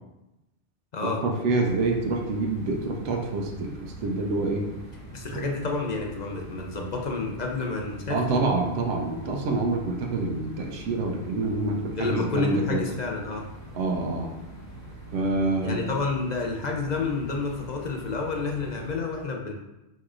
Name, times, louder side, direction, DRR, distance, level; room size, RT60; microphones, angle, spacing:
voice 1, 1.0-4.7 5.3-5.4 8.1-12.8 13.7-14.3 15.1-15.8, right 2 dB, 90° right, 1 dB, 1.0 m, -27 dB
sound 1, 1.6-18.9, right 1 dB, 15° left, 0.9 m, -44 dB
voice 2, 5.1-8.2 12.0-13.5 15.6-19.5, left 3 dB, 50° left, 1 dB, 0.6 m, -29 dB
4.6 x 4.2 x 2.4 m, 0.97 s
omnidirectional pair, 1.2 m